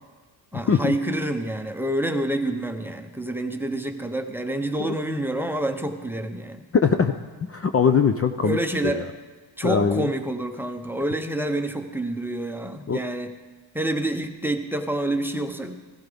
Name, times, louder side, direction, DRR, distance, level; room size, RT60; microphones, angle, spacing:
voice 1, 0.5-6.6 8.4-9.1 9.6-13.3 13.7-15.8, right 1 dB, 5° right, 5 dB, 0.7 m, -28 dB
voice 2, 6.7-7.1 7.5-8.6 8.8-9.1 9.6-10.1 12.9-13.0, left 6 dB, 30° left, 7 dB, 0.5 m, -21 dB
15.5 x 15.0 x 3.5 m, 1.4 s
wide cardioid pair, 135°, 46 cm